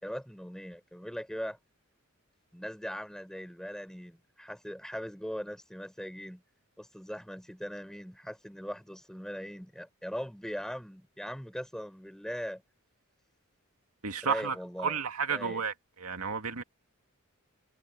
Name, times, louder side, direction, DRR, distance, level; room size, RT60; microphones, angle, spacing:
voice 1, 0.0-1.6 2.5-6.4 6.8-12.6 14.2-15.0 15.3-15.6, equal, 5° left, 5.4 m, -40 dB
voice 2, 14.0-14.6 14.8-15.7 16.0-16.6, right 5 dB, 85° right, 2.1 m, -31 dB
head